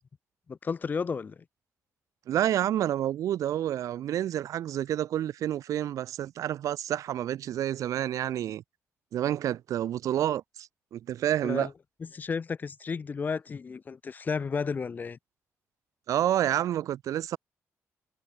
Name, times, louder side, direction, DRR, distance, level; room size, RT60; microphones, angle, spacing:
voice 1, 0.5-1.4 11.4-11.7 12.0-15.2, left 5 dB, 35° left, 2.0 m, -32 dB
voice 2, 2.3-8.6 9.1-11.7 16.1-17.4, right 11 dB, 85° right, 1.1 m, -29 dB
wide cardioid pair, 155°, 5 cm